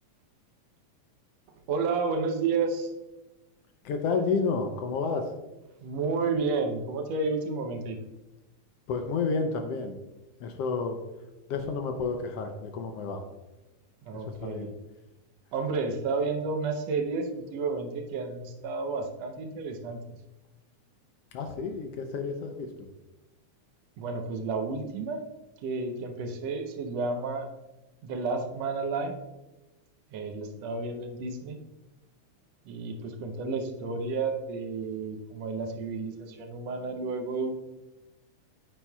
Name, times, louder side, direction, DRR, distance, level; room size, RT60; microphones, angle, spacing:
voice 1, 1.7-2.9 5.8-8.0 14.0-14.7 15.5-20.2 24.0-25.2 25.6-27.5 28.0-29.1 30.1-31.6 32.7-37.6, right 4 dB, 70° right, 4 dB, 1.8 m, -31 dB
voice 2, 3.8-5.3 8.9-10.0 10.4-11.0 11.5-13.2 14.4-14.7 21.3-22.7, left 4 dB, 75° left, 5 dB, 1.4 m, -30 dB
8.8 x 8.7 x 2.3 m, 1.0 s
omnidirectional pair, 3.4 m